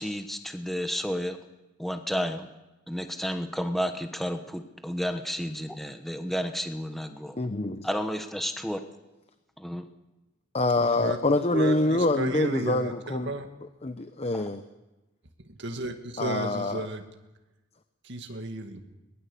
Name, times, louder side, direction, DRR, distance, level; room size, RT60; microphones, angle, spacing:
voice 1, 0.0-1.4 1.8-2.5 2.9-7.4 7.8-8.8 9.6-9.9 14.3-14.4, equal, ahead, 6 dB, 1.1 m, -31 dB
voice 2, 7.3-7.9 10.5-13.3 13.8-14.6 16.2-16.9, left 2 dB, 30° left, 9 dB, 0.8 m, -26 dB
voice 3, 11.5-13.5 15.4-17.0 18.0-18.8, right 2 dB, 60° right, 5 dB, 2.1 m, -33 dB
22.0 x 20.5 x 7.0 m, 1.0 s
head